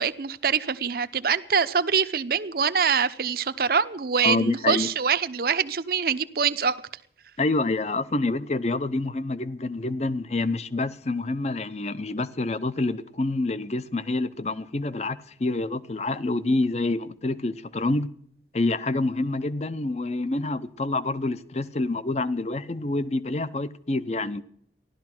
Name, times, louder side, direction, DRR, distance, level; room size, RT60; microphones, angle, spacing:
voice 1, 0.0-6.8, right 6 dB, 55° right, 0.7 m, -24 dB
voice 2, 4.2-4.9 7.4-18.1 18.5-24.4, left 2 dB, 35° left, 0.6 m, -27 dB
15.5 x 12.0 x 6.0 m
head